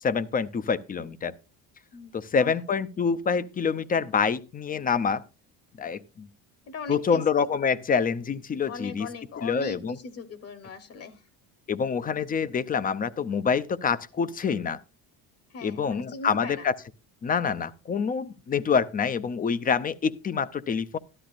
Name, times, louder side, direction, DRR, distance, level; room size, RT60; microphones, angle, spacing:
voice 1, 0.0-1.3 2.1-5.2 5.8-6.3 6.9-9.1 9.4-10.0 11.7-14.8 15.6-16.7 17.2-21.0, left 6 dB, 20° left, 0.5 m, -26 dB
voice 2, 1.9-2.5 6.7-7.5 8.7-11.3 15.5-16.7, left 4 dB, 40° left, 1.0 m, -39 dB
12.5 x 12.0 x 2.5 m
cardioid pair, 125°, 39 cm